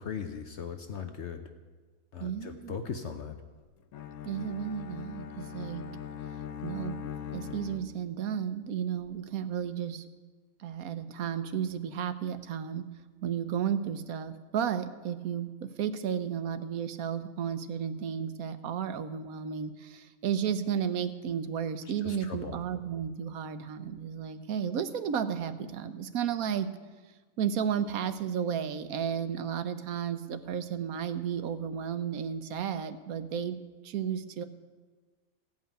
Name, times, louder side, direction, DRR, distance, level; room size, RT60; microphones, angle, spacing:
voice 1, 0.0-1.4 2.1-3.4 21.8-22.6, left 6 dB, 60° left, 7 dB, 1.0 m, -39 dB
voice 2, 2.2-2.8 4.3-5.9 6.6-10.0 10.6-12.8 13.2-26.7 27.4-33.6 33.8-34.4, right 8 dB, 90° right, 11 dB, 1.2 m, -33 dB
Bowed string instrument, 3.9-8.3, left 9 dB, 90° left, 1.2 m, -41 dB
16.0 x 5.6 x 9.1 m, 1.3 s
omnidirectional pair, 1.5 m